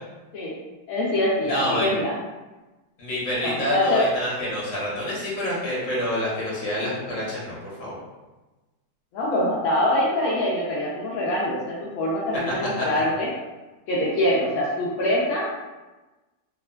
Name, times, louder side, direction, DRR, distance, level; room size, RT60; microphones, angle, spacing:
voice 1, 0.9-2.1 3.4-4.0 9.1-13.3 13.9-15.5, left 1 dB, 70° left, -7 dB, 0.9 m, -24 dB
voice 2, 1.4-1.9 3.0-8.0 12.8-12.9, equal, 55° left, -7 dB, 1.3 m, -28 dB
2.9 x 2.3 x 2.2 m, 1.1 s
omnidirectional pair, 1.8 m